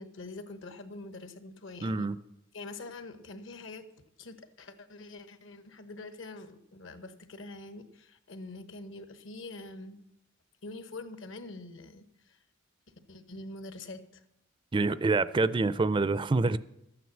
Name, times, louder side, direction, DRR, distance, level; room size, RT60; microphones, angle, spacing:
voice 1, 0.0-2.1 2.5-3.8 4.2-10.0 10.6-12.4 13.1-14.2, left 2 dB, 65° left, 1.1 m, -45 dB
voice 2, 1.8-2.2 14.7-16.6, right 3 dB, 25° right, 0.4 m, -26 dB
13.0 x 9.5 x 7.1 m
head